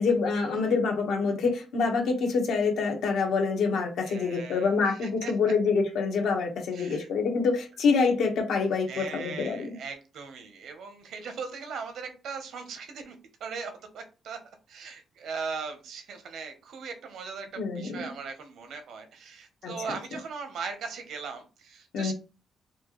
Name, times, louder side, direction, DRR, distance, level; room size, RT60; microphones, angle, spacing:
voice 1, 0.0-9.8 17.6-18.1 19.6-20.0 21.9-22.1, left 4 dB, 70° left, 1.0 m, -26 dB
voice 2, 4.0-4.7 5.0-5.3 6.7-7.1 8.9-14.4 14.7-22.1, right 5 dB, 65° right, 0.8 m, -39 dB
4.3 x 2.5 x 3.0 m
cardioid pair, 180°, 0 cm